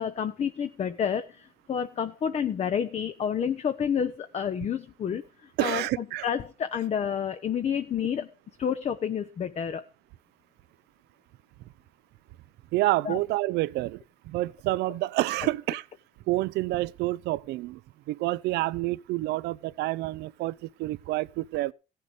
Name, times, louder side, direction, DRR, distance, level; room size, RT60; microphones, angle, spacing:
voice 1, 0.0-8.3 8.6-9.9 13.0-13.2, left 8 dB, 40° left, 0.8 m, -29 dB
voice 2, 5.6-6.3 12.7-15.8 16.3-17.8 18.1-21.7, right 18 dB, 80° right, 0.5 m, -28 dB
15.5 x 6.6 x 5.1 m
cardioid pair, 110°, 17 cm